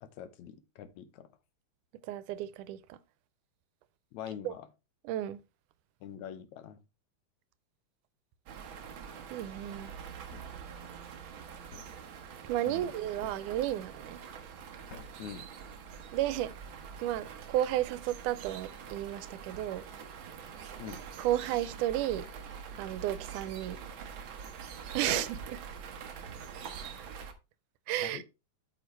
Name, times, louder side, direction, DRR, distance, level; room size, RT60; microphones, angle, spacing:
voice 1, 0.0-1.3 4.1-4.7 6.0-6.8 12.7-12.9 15.2-15.5 20.8-21.0 25.1-25.3 28.0-28.2, left 9 dB, 70° left, 2.1 m, -43 dB
voice 2, 2.1-3.0 4.5-4.6 5.0-5.4 9.3-9.9 12.4-14.2 16.1-16.5 17.0-19.8 21.2-22.3 22.8-23.8 24.9-25.6 27.9-28.2, right 13 dB, 85° right, 2.2 m, -33 dB
sound 1, 8.5-27.3, right 7 dB, 65° right, 1.3 m, -45 dB
Thump thud, 10.3-10.7 11.7-12.1 13.2-13.6 14.9-15.3, left 4 dB, 55° left, 1.2 m, -51 dB
8.7 x 6.6 x 3.2 m
omnidirectional pair, 3.6 m